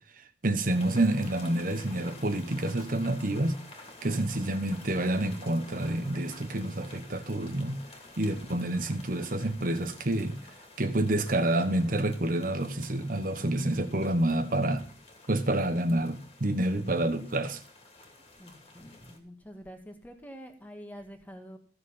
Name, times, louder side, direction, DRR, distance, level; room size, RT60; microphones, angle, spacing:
voice 1, 0.4-3.5 4.0-7.8 8.2-10.3 10.8-14.8 15.3-17.6, right 1 dB, 50° right, 9 dB, 1.2 m, -28 dB
sound 1, 0.7-19.2, left 2 dB, 35° left, 2.4 m, -50 dB
voice 2, 18.4-21.6, equal, 10° left, 4 dB, 1.8 m, -47 dB
15.0 x 6.9 x 5.6 m, 0.43 s
head